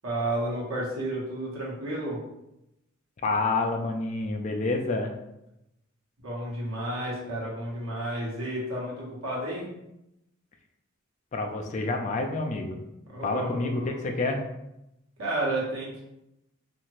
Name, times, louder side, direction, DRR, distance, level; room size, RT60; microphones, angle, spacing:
voice 1, 0.0-2.2 6.2-9.7 13.1-14.0 15.2-16.0, right 1 dB, 75° right, -5 dB, 1.1 m, -31 dB
voice 2, 3.2-5.2 11.3-12.8 13.2-14.5, left 3 dB, 35° left, 3 dB, 0.3 m, -28 dB
2.7 x 2.5 x 3.0 m, 0.88 s
head